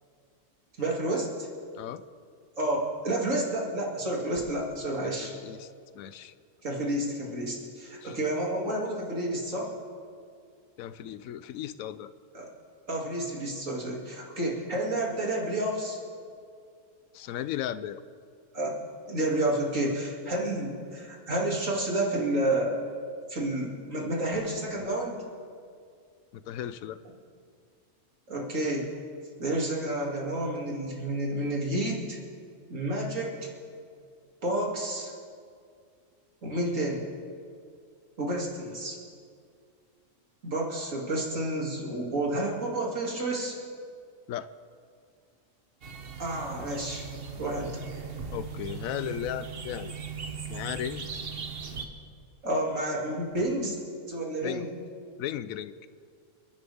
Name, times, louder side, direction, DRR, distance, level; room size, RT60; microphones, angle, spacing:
voice 1, 0.8-1.5 2.6-5.3 6.6-9.7 12.3-12.5 12.9-16.0 18.5-18.8 19.1-22.8 23.3-25.2 28.3-28.9 29.4-32.2 32.7-33.3 34.4-35.1 36.4-37.0 38.2-39.0 40.4-43.6 46.2-47.0 47.4-47.7 52.4-53.8 54.1-54.7, right 1 dB, 70° right, -3 dB, 3.0 m, -30 dB
voice 2, 5.0-5.7 5.9-6.3 8.0-8.2 10.8-12.1 17.1-18.0 26.3-27.0 44.3-44.5 48.3-49.9 50.5-51.0 54.4-54.7 55.2-55.7, left 11 dB, 85° left, 15 dB, 1.0 m, -36 dB
sound 1, 45.8-51.8, right 5 dB, 50° right, 1.2 m, -39 dB
28.5 x 11.0 x 3.6 m, 2.2 s
omnidirectional pair, 1.4 m